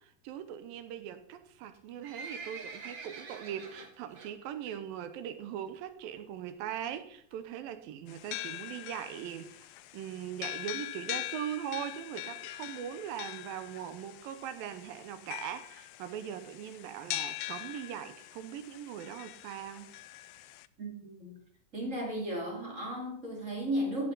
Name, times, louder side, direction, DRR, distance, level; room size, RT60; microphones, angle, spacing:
voice 1, 0.0-9.6 9.9-19.9, right 10 dB, 80° right, 2.5 m, -40 dB
Livestock farm animals working animals, 1.6-4.3 4.7-4.9 5.2-5.3 6.0-6.1 6.4-6.5 6.7-6.8 7.3-7.6 8.2-8.3 8.5-8.6 8.7-8.8 9.1-9.2 9.6-9.7 10.2-10.3 10.7-10.8, right 4 dB, 45° right, 2.0 m, -45 dB
sound 1, 8.1-20.7, left 17 dB, 85° left, 2.3 m, -42 dB
voice 2, 20.8-21.4 21.7-24.1, equal, 25° right, 2.3 m, -35 dB
14.5 x 8.4 x 4.0 m
omnidirectional pair, 4.1 m